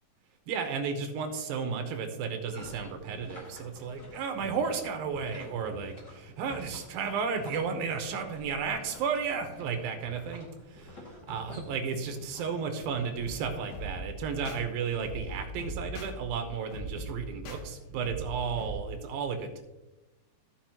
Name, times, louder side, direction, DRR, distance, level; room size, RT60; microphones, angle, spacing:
voice 1, 0.5-19.6, right 6 dB, 75° right, 6 dB, 2.6 m, -33 dB
sound 1, 2.3-13.9, left 1 dB, 35° left, 2.0 m, -49 dB
sound 2, 13.2-18.8, right 1 dB, 75° left, 2.9 m, -41 dB
15.0 x 5.5 x 2.9 m, 1.0 s
omnidirectional pair, 4.5 m